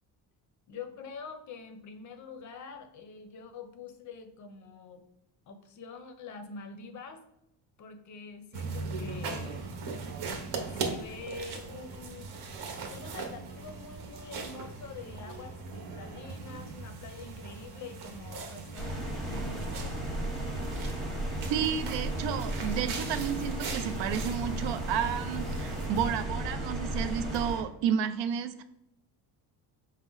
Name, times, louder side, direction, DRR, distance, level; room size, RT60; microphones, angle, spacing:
voice 1, 0.7-5.0 5.5-7.2 7.8-9.6 10.7-12.3 12.9-18.9 19.2-19.9, left 4 dB, 45° left, 8 dB, 0.5 m, -45 dB
sound 1, 8.5-26.2, right 4 dB, 60° right, 0.9 m, -40 dB
sound 2, 18.8-27.6, right 1 dB, ahead, 0.7 m, -34 dB
voice 2, 21.5-28.6, right 8 dB, 75° right, 10 dB, 0.5 m, -31 dB
5.0 x 2.1 x 3.8 m, 0.78 s
cardioid pair, 150°, 44 cm